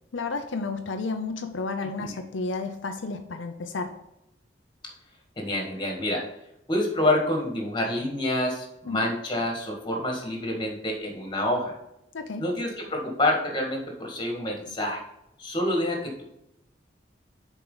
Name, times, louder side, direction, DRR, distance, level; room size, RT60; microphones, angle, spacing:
voice 1, 0.1-4.0 8.9-9.1 12.1-12.5, left 3 dB, 85° left, 6 dB, 0.6 m, -32 dB
voice 2, 5.4-6.2 6.7-11.7 12.4-15.0 15.4-16.2, left 1 dB, 25° left, 0 dB, 1.8 m, -27 dB
6.9 x 4.7 x 3.9 m, 0.85 s
head